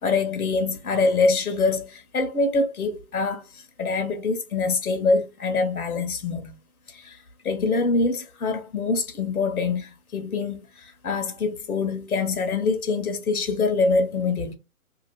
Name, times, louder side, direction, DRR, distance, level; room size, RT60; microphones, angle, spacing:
voice 1, 0.0-6.6 6.9-7.2 7.4-14.6, left 3 dB, 75° left, 1.0 m, -25 dB
2.8 x 2.3 x 3.1 m
hypercardioid pair, 155°, 43 cm